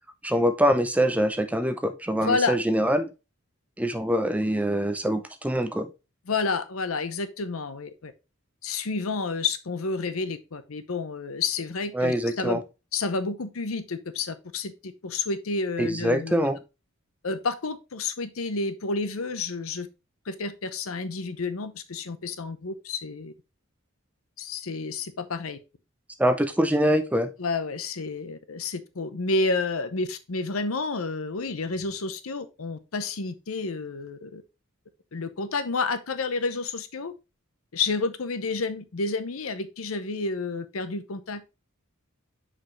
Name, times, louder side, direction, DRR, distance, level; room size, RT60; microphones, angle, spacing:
voice 1, 0.2-3.1 3.8-5.9 12.0-12.6 15.8-16.6 26.2-27.3, equal, 5° right, 0.6 m, -24 dB
voice 2, 2.2-2.6 6.3-8.1 8.6-12.6 12.9-16.5 17.2-19.9 20.3-23.3 24.4-25.6 27.4-34.4 35.1-37.1 37.7-41.4, left 3 dB, 85° left, 0.8 m, -30 dB
6.4 x 5.0 x 3.2 m
head